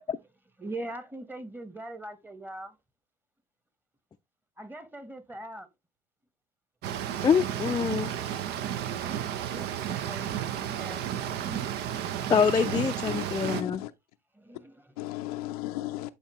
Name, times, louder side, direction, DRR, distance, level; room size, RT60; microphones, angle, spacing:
voice 1, 0.6-2.8 4.6-5.7 9.0-9.3 9.5-11.1 11.4-11.9 14.3-14.9, right 1 dB, 10° right, 1.3 m, -42 dB
sound 1, 6.8-13.6, right 10 dB, 60° right, 0.8 m, -32 dB
voice 2, 7.2-8.1 12.3-13.8, left 6 dB, 20° left, 0.5 m, -25 dB
voice 3, 13.1-13.9 15.0-16.1, left 16 dB, 80° left, 0.6 m, -35 dB
9.7 x 4.3 x 3.1 m
hypercardioid pair, 75°, 19 cm